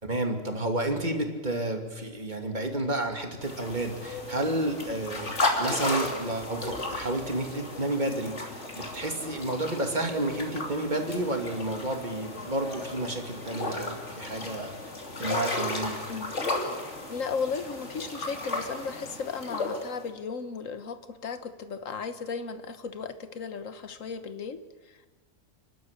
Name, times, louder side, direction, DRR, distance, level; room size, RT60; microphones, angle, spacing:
voice 1, 0.0-14.7 15.2-16.0, right 1 dB, 35° right, 3 dB, 2.7 m, -31 dB
sound 1, 3.4-20.1, left 2 dB, 65° left, 3.2 m, -34 dB
voice 2, 17.1-25.1, left 5 dB, 85° left, 10 dB, 1.6 m, -35 dB
29.0 x 12.5 x 9.8 m, 1.3 s
omnidirectional pair, 1.3 m